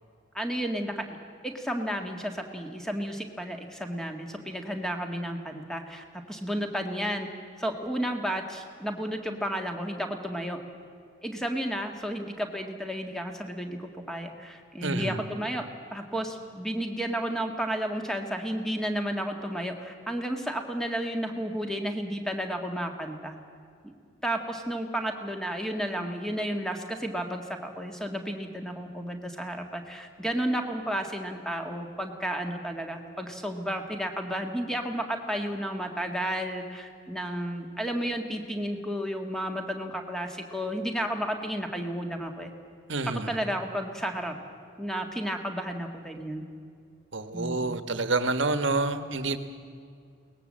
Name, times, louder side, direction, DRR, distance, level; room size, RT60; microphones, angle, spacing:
voice 1, 0.3-1.1 1.4-10.6 11.2-23.3 24.2-42.5 43.1-44.3 44.8-46.4 47.3-47.7, equal, 5° left, 4 dB, 1.8 m, -32 dB
voice 2, 14.8-15.3 42.9-43.4 47.1-49.4, right 3 dB, 80° right, 10 dB, 1.4 m, -28 dB
22.5 x 19.5 x 7.6 m, 2.3 s
head